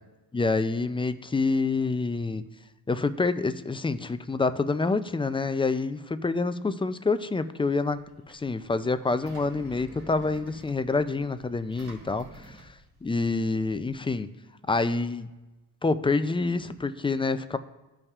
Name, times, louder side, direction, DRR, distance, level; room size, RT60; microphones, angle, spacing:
voice 1, 0.3-2.4 2.9-8.0 8.3-12.7 13.0-14.3 14.7-15.3 15.8-17.6, left 3 dB, 15° left, 11 dB, 0.3 m, -27 dB
Engine, 7.8-13.9, right 2 dB, 70° right, 2.1 m, -51 dB
15.5 x 5.5 x 2.4 m, 1.1 s
cardioid pair, 100°, 39 cm